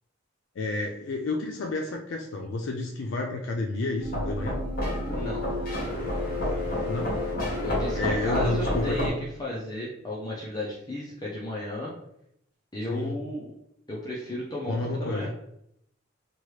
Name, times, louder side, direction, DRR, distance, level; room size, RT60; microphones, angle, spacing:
voice 1, 0.6-4.6 6.9-7.2 8.0-9.1 12.9-13.2 14.7-15.3, left 2 dB, 85° left, 1 dB, 0.4 m, -30 dB
sound 1, 4.0-9.1, left 1 dB, 50° left, 0.9 m, -29 dB
voice 2, 5.1-5.4 7.6-11.9 12.7-13.5 13.9-15.3, left 1 dB, 20° left, -5 dB, 0.5 m, -34 dB
2.9 x 2.3 x 3.1 m, 0.76 s
head